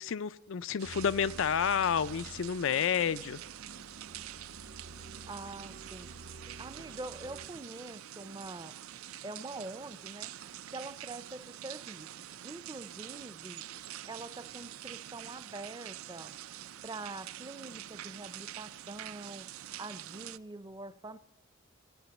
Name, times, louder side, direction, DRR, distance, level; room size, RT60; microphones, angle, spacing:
voice 1, 0.0-3.4, left 7 dB, 65° left, 0.4 m, -30 dB
sound 1, 0.8-7.5, right 1 dB, 65° right, 0.9 m, -51 dB
sound 2, 0.8-20.4, right 12 dB, 85° right, 0.4 m, -46 dB
voice 2, 5.2-6.1 6.5-8.8 9.2-10.3 10.7-12.1 12.4-13.6 14.0-16.3 16.8-19.5 19.8-21.2, right 2 dB, 20° right, 0.5 m, -44 dB
15.0 x 9.9 x 7.1 m
head